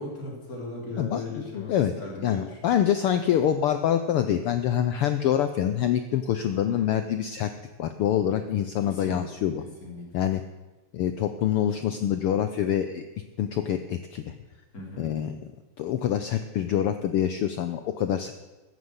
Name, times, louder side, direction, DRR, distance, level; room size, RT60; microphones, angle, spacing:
voice 1, 0.0-2.8 6.5-6.9 8.8-9.2 9.6-10.1 14.7-15.1, left 2 dB, 30° left, -2 dB, 4.2 m, -38 dB
voice 2, 1.0-1.9 2.2-7.5 7.8-9.6 10.1-10.4 10.9-13.0 13.4-14.3 15.0-15.4 15.8-18.3, left 10 dB, 80° left, 10 dB, 1.2 m, -26 dB
14.5 x 9.4 x 8.0 m, 1.1 s
omnidirectional pair, 3.3 m